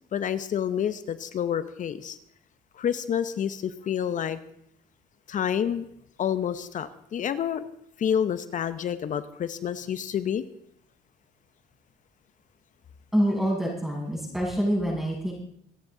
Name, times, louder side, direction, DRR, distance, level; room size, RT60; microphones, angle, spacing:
voice 1, 0.1-2.2 2.8-4.4 5.3-5.8 6.2-7.6 8.0-10.4, left 9 dB, 50° left, 13 dB, 0.9 m, -28 dB
voice 2, 13.1-15.3, equal, ahead, -3 dB, 6.7 m, -26 dB
26.0 x 9.8 x 3.9 m, 0.71 s
cardioid pair, 110°, 17 cm